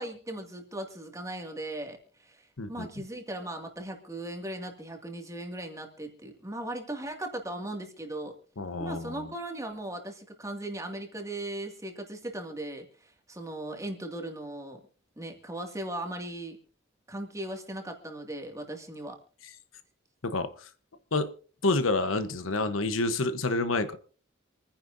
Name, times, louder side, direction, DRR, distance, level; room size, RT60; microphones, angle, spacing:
voice 1, 0.0-8.4 8.8-14.8 15.2-16.6 17.1-19.2, right 1 dB, 15° right, 3 dB, 2.2 m, -38 dB
voice 2, 2.6-2.9 8.6-9.3 20.2-20.7 21.1-21.3 21.6-24.0, left 2 dB, 80° left, 10 dB, 1.1 m, -28 dB
27.0 x 10.0 x 2.7 m, 0.39 s
head